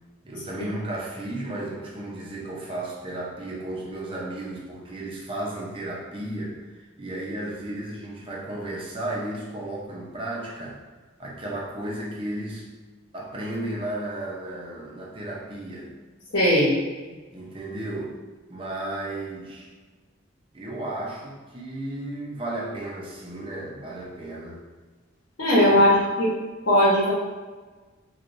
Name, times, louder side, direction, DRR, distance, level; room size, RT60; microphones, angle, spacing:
voice 1, 0.2-10.8 11.2-12.7 13.1-15.9 17.3-18.2 18.5-19.7 20.5-24.6 25.7-26.1, right 1 dB, 25° right, -4 dB, 0.6 m, -34 dB
voice 2, 16.3-16.7 25.4-26.3 26.7-27.1, equal, 80° left, -8 dB, 1.0 m, -18 dB
4.4 x 2.3 x 2.6 m, 1.3 s
head